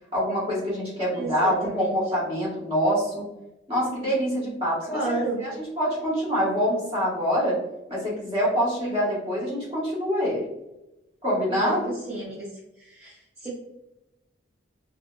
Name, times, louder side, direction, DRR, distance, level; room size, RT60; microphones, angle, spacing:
voice 1, 0.1-3.2 3.7-5.1 5.4-5.5 5.8-7.6 7.9-10.4 11.2-11.8, equal, 30° right, -7 dB, 1.4 m, -25 dB
voice 2, 1.1-2.0 4.9-5.4 11.5-12.5 12.8-13.5, right 2 dB, 10° right, -10 dB, 0.7 m, -31 dB
3.8 x 2.0 x 2.5 m, 0.94 s
head